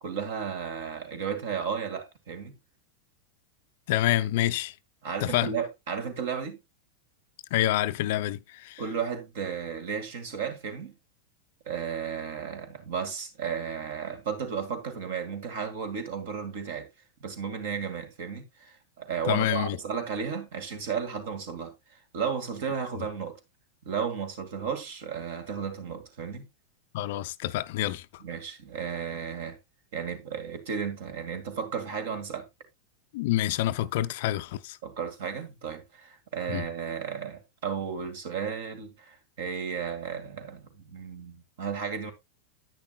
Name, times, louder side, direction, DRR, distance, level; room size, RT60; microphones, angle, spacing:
voice 1, 0.0-2.5 5.0-6.6 8.8-10.9 11.7-16.9 17.2-23.4 23.9-26.5 28.2-29.6 29.9-32.5 34.8-42.1, right 7 dB, 55° right, 2.0 m, -34 dB
voice 2, 3.9-4.7 5.2-5.5 7.5-8.8 19.3-19.8 26.9-28.1 33.1-34.8 36.5-36.7, left 14 dB, 50° left, 0.5 m, -27 dB
10.5 x 9.6 x 2.4 m
figure-of-eight pair, 90°, 0 cm